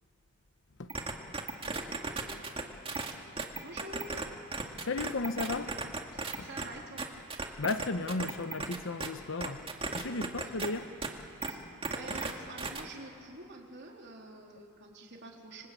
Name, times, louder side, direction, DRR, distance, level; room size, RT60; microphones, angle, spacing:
sound 1, 0.9-4.3 4.5-6.6 7.0-9.1 9.4-10.7 11.0-11.1 11.4-11.5 11.8-12.3 12.6-12.8, right 3 dB, 25° right, 2.2 m, -35 dB
voice 1, 3.6-4.2 6.1-7.1 11.4-15.7, right 2 dB, 55° right, 1 dB, 3.9 m, -47 dB
voice 2, 4.8-5.9 6.4-6.5 7.6-9.6 9.9-10.9, left 3 dB, 65° left, 10 dB, 1.1 m, -34 dB
26.5 x 25.5 x 8.7 m, 2.5 s
head